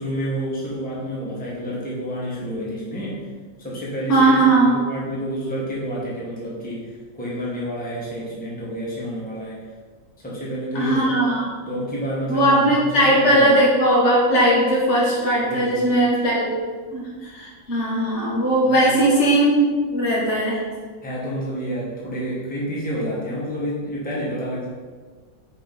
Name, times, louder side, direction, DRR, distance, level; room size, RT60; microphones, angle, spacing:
voice 1, 0.0-3.2 3.6-9.6 10.2-11.2 11.6-13.6 15.4-15.9 18.6-19.1 21.0-24.7, equal, 5° left, -6 dB, 1.4 m, -29 dB
voice 2, 4.1-4.7 10.7-11.5 12.3-16.5 16.9-19.7 19.9-20.6, right 1 dB, 40° left, -4 dB, 1.9 m, -18 dB
5.9 x 5.0 x 5.3 m, 1.5 s
omnidirectional pair, 2.1 m